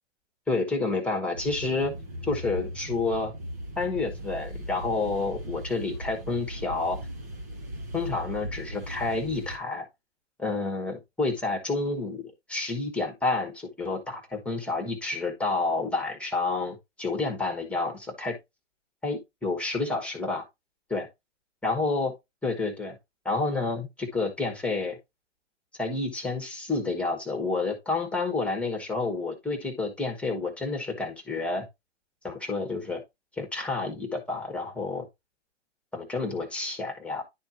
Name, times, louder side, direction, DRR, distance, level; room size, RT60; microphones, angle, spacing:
voice 1, 0.5-1.9 2.2-3.3 3.8-7.0 7.9-9.9 10.4-18.4 19.0-20.4 20.9-21.1 21.6-22.1 22.4-22.9 23.2-25.0 25.8-31.6 32.2-33.0 33.4-35.0 35.9-37.2, left 3 dB, 5° left, 1.3 m, -29 dB
sound 1, 1.3-9.6, equal, 15° right, 0.3 m, -38 dB
10.5 x 4.4 x 2.9 m
hypercardioid pair, 140°, 38 cm